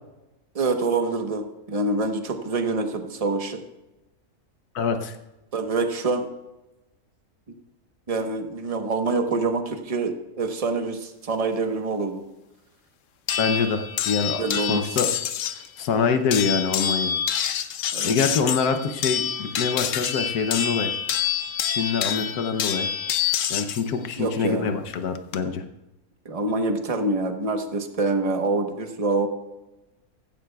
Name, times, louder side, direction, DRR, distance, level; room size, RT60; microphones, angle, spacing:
voice 1, 0.5-3.6 5.5-6.3 8.1-12.2 14.4-15.0 17.9-18.1 24.2-24.7 26.2-29.3, right 3 dB, 25° right, 5 dB, 1.0 m, -26 dB
voice 2, 4.7-5.2 13.4-14.4 14.7-15.1 15.8-17.1 18.0-20.9 21.7-22.9 23.5-25.6, left 5 dB, 80° left, 7 dB, 1.3 m, -25 dB
sound 1, 13.3-15.7 16.3-23.8 24.9-25.4, left 8 dB, 65° left, 0.9 m, -27 dB
15.5 x 14.0 x 2.3 m, 0.98 s
omnidirectional pair, 1.6 m